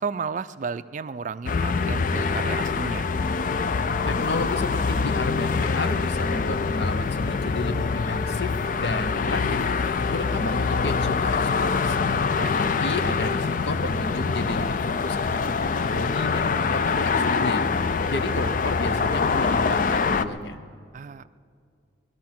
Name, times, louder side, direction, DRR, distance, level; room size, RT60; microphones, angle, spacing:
voice 1, 0.0-3.1 12.4-12.6 20.9-21.3, right 5 dB, 45° right, 14 dB, 0.4 m, -33 dB
sound 1, 1.5-20.3, left 4 dB, 50° left, 0.4 m, -24 dB
voice 2, 4.1-9.7 10.1-12.1 12.6-17.7 18.1-20.6, left 2 dB, 75° left, 9 dB, 0.9 m, -32 dB
19.5 x 12.5 x 6.0 m, 2.3 s
head